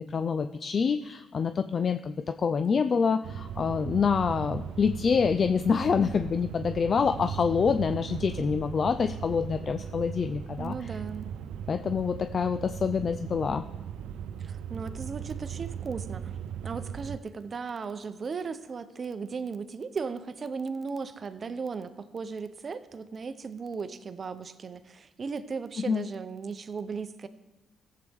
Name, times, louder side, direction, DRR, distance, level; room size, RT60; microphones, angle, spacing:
voice 1, 0.0-11.0 11.7-13.6 25.9-26.0, left 6 dB, 45° left, 9 dB, 0.3 m, -26 dB
sound 1, 3.2-17.2, right 8 dB, 80° right, 0.3 m, -38 dB
voice 2, 10.6-11.3 14.4-16.3 16.6-27.3, right 5 dB, 40° right, 12 dB, 0.7 m, -36 dB
15.5 x 7.7 x 3.5 m, 1.1 s
cardioid pair, 90°, 0 cm